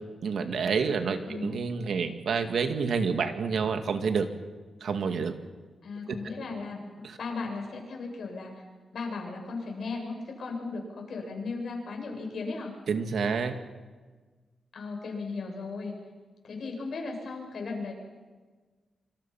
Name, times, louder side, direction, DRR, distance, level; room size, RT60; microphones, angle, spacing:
voice 1, 0.2-4.3 4.8-5.3 6.1-6.2 7.0-7.2 12.9-13.5, right 5 dB, 80° right, 7 dB, 2.1 m, -28 dB
voice 2, 1.2-1.5 5.8-6.9 7.2-8.7 8.9-12.7 14.7-15.9 16.4-17.9, left 4 dB, 65° left, 1 dB, 7.4 m, -36 dB
26.5 x 26.0 x 5.9 m, 1.4 s
wide cardioid pair, 110°, 0 cm